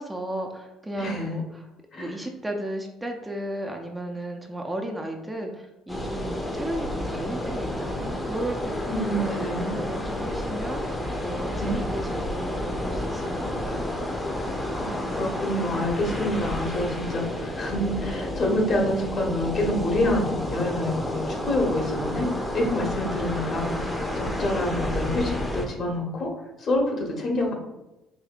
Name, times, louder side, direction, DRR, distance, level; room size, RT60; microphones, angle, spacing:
voice 1, 0.0-1.7 2.0-14.0, right 1 dB, 10° right, 2 dB, 0.5 m, -35 dB
voice 2, 1.0-1.4 1.9-2.1 8.9-9.7 11.6-11.7 14.7-22.3 22.5-23.7 24.1-26.3 26.6-27.5, left 1 dB, 50° left, 1 dB, 1.1 m, -27 dB
sound 1, 5.9-25.7, left 1 dB, 20° left, 0.7 m, -30 dB
4.9 x 2.6 x 2.4 m, 0.97 s
supercardioid pair, 80°, 0 cm